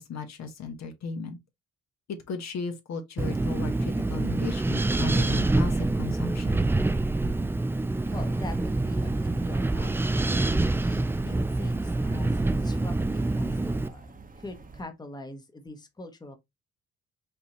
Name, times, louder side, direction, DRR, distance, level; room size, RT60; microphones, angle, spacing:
voice 1, 0.0-1.4 2.1-6.6, left 4 dB, 60° left, 1.2 m, -36 dB
Wind, 3.2-13.9, right 2 dB, 10° right, 0.3 m, -26 dB
sound 1, 8.0-14.8, right 3 dB, 30° right, 1.0 m, -48 dB
voice 2, 8.1-16.4, left 2 dB, 15° left, 1.0 m, -43 dB
5.4 x 2.8 x 3.0 m
cardioid pair, 90°, 30 cm